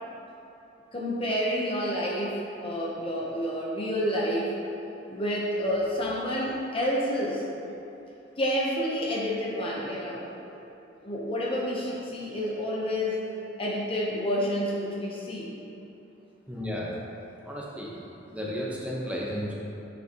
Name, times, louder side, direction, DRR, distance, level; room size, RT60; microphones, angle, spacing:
voice 1, 0.9-4.5 5.1-7.5 8.4-10.4 11.0-13.2 13.6-15.5, equal, 30° left, -4 dB, 0.8 m, -29 dB
voice 2, 16.5-17.0 17.4-18.0 18.3-19.5, equal, 5° right, -5 dB, 1.0 m, -33 dB
9.3 x 6.7 x 2.9 m, 2.9 s
head